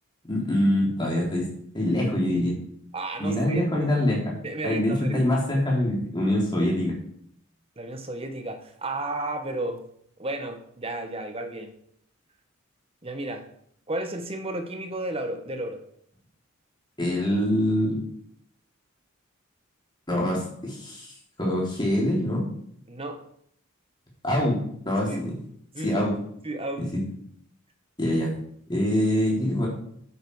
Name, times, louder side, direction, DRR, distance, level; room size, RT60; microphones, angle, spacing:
voice 1, 0.3-2.6 3.2-4.3 4.6-7.0 17.0-18.0 20.1-21.1 21.4-22.4 24.2-25.3 25.8-26.2 26.9-27.0 28.0-28.3 28.7-29.7, left 1 dB, 20° left, -3 dB, 3.6 m, -24 dB
voice 2, 2.9-3.6 4.4-5.3 7.8-9.8 10.2-11.7 13.0-13.4 13.9-15.8 22.9-23.2 25.1-25.2 25.7-26.0 26.4-26.9, right 2 dB, 30° right, 6 dB, 1.2 m, -33 dB
8.8 x 8.4 x 4.8 m, 0.68 s
head